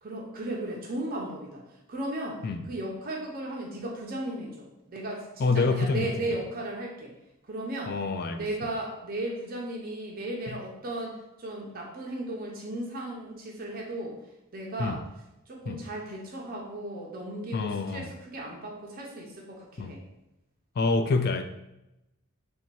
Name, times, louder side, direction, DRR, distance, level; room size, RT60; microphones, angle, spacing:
voice 1, 0.0-1.6 1.9-7.1 7.4-7.9 8.3-14.2 14.5-15.0 15.5-20.0, right 1 dB, 45° right, -1 dB, 0.6 m, -36 dB
voice 2, 5.4-6.1 7.9-8.5 10.5-10.6 14.8-15.0 15.7-15.8 17.5-18.1 19.8-19.9 20.8-21.4, left 3 dB, 45° left, 8 dB, 0.4 m, -27 dB
3.3 x 2.7 x 4.6 m, 0.90 s
head